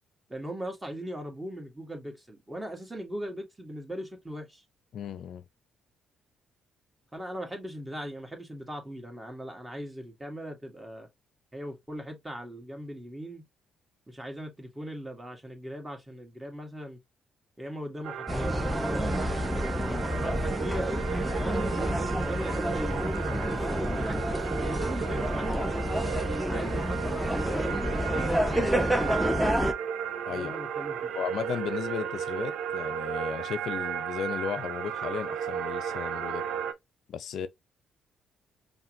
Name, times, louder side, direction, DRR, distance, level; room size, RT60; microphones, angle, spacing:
voice 1, 0.3-4.6 7.1-11.1 11.5-13.4 14.1-17.0 17.6-19.2 19.9-25.8 26.5-29.7 30.3-31.0, right 1 dB, 15° right, 1.8 m, -39 dB
voice 2, 4.9-5.4 30.3-30.6 31.1-36.4 37.1-37.5, left 8 dB, 60° left, 0.4 m, -35 dB
sound 1, 18.0-36.7, right 8 dB, 70° right, 0.4 m, -34 dB
sound 2, 18.3-29.7, equal, ahead, 0.8 m, -29 dB
5.5 x 2.2 x 3.0 m
hypercardioid pair, 45°, 0 cm